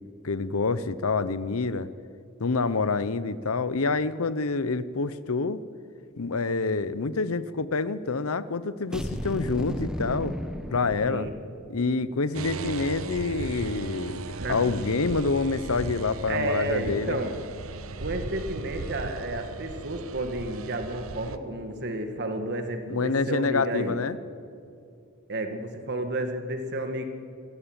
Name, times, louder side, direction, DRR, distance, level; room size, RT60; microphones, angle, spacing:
voice 1, 0.2-1.9 2.4-5.6 6.2-10.3 10.7-11.3 11.7-17.2 22.9-24.2, left 4 dB, 85° left, 15 dB, 0.9 m, -27 dB
sound 1, 8.9-11.7, equal, 5° right, 1.1 m, -34 dB
sound 2, 12.3-21.4, right 3 dB, 75° right, 1.0 m, -37 dB
voice 2, 14.4-14.7 16.3-17.4 18.0-24.0 25.3-27.0, right 1 dB, 55° right, 6 dB, 2.0 m, -31 dB
28.0 x 14.0 x 9.0 m, 2.5 s
head